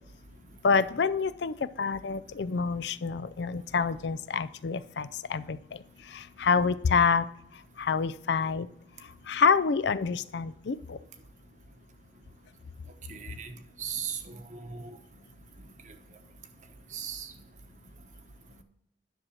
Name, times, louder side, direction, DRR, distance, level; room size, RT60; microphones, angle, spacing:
voice 1, 0.6-5.6 6.1-7.2 7.8-8.7 9.3-11.0, left 5 dB, 70° left, 15 dB, 0.4 m, -27 dB
voice 2, 13.1-13.5 13.8-15.0 16.9-17.3, right 7 dB, 40° right, 7 dB, 1.0 m, -37 dB
10.5 x 6.3 x 4.3 m, 0.76 s
head